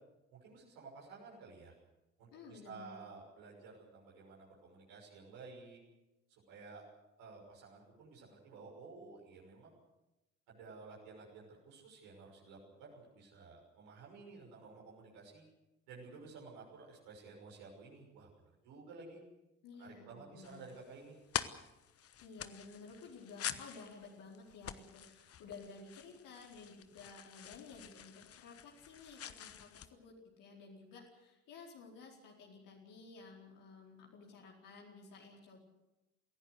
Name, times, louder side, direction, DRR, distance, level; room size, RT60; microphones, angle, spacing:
voice 1, 0.3-1.7 2.2-5.8 6.3-6.8 7.2-9.8 10.5-15.4 15.9-19.2 19.8-21.2, right 4 dB, 65° right, -3 dB, 6.4 m, -53 dB
voice 2, 2.3-3.0 19.6-20.7 22.2-35.6, left 4 dB, 60° left, -2 dB, 4.6 m, -54 dB
sound 1, 20.4-29.9, left 9 dB, 40° left, 1.3 m, -46 dB
24.5 x 17.0 x 8.2 m, 0.97 s
figure-of-eight pair, 50°, 37 cm